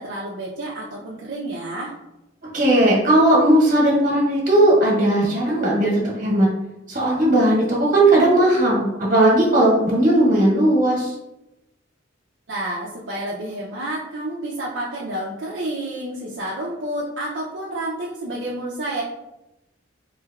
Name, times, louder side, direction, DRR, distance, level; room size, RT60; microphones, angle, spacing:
voice 1, 0.0-1.9 12.5-19.0, right 1 dB, 65° right, -6 dB, 0.6 m, -29 dB
voice 2, 2.5-6.5 6.9-11.1, right 1 dB, 45° right, -4 dB, 1.3 m, -17 dB
3.8 x 3.2 x 2.3 m, 0.93 s
head